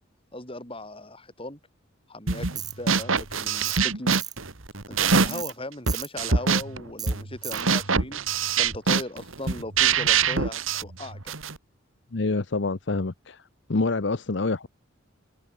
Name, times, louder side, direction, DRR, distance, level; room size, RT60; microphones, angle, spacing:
voice 1, 0.3-1.6 2.1-4.2 4.9-8.2 8.6-11.4, left 1 dB, 25° left, 6.4 m, -38 dB
sound 1, 2.3-2.6 2.9-5.5 5.9-11.6, right 5 dB, 75° right, 2.1 m, -24 dB
Tools, 2.6-2.7 3.6-3.8 4.1-4.3 5.3-5.5 5.9-6.1 7.0-7.1 7.4-7.6, right 9 dB, 20° right, 0.7 m, -35 dB
voice 2, 12.1-13.4 13.7-14.7, left 3 dB, 60° left, 0.8 m, -26 dB
head